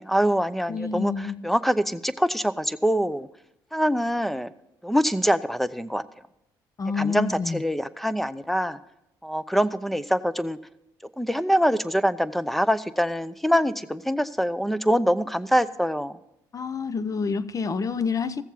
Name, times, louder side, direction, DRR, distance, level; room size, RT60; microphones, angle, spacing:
voice 1, 0.0-3.3 3.7-4.5 4.8-6.0 7.0-8.8 9.2-10.6 11.2-16.2, equal, ahead, 0.7 m, -24 dB
voice 2, 0.7-1.4 6.8-7.6 16.5-18.4, left 5 dB, 35° left, 0.7 m, -28 dB
15.5 x 7.2 x 5.7 m
supercardioid pair, 70°, 9 cm